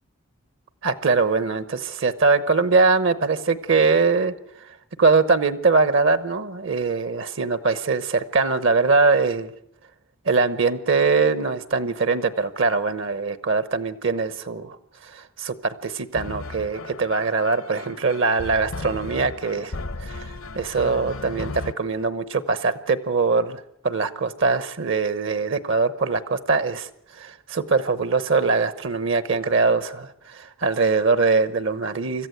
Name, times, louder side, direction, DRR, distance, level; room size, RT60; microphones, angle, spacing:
voice 1, 0.8-9.5 10.2-14.8 15.0-26.9 27.2-32.3, right 4 dB, 60° right, 13 dB, 0.9 m, -22 dB
sound 1, 16.1-21.7, left 3 dB, 70° left, 0.8 m, -35 dB
25.5 x 14.5 x 7.9 m, 0.75 s
head